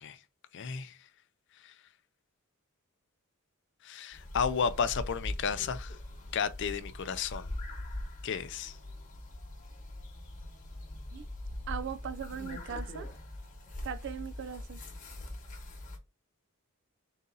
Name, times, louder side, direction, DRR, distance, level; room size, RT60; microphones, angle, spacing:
voice 1, 0.5-0.9 1.6-1.7 3.8-6.0 6.3-7.5 8.2-8.7, left 6 dB, 55° left, 0.4 m, -32 dB
sound 1, 4.1-16.0, left 1 dB, 35° left, 1.1 m, -42 dB
voice 2, 11.7-13.1 13.8-14.8, right 8 dB, 55° right, 0.3 m, -39 dB
3.9 x 2.7 x 3.8 m
head